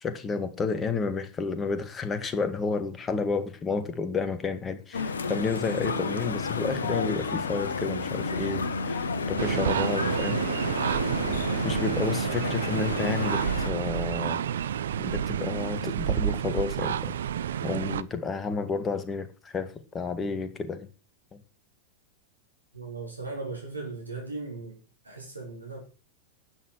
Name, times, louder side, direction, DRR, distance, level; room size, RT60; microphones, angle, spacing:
voice 1, 0.0-10.4 11.6-14.5 15.0-17.1 17.6-20.9 21.3-21.4, left 4 dB, 20° left, 2.0 m, -31 dB
sound 1, 4.9-13.7, left 4 dB, 70° left, 1.3 m, -31 dB
sound 2, 9.4-18.0, right 9 dB, 65° right, 0.7 m, -29 dB
voice 2, 22.7-24.8 25.0-25.8, right 3 dB, 85° right, 3.5 m, -37 dB
12.5 x 9.0 x 6.3 m
figure-of-eight pair, 90°, 0 cm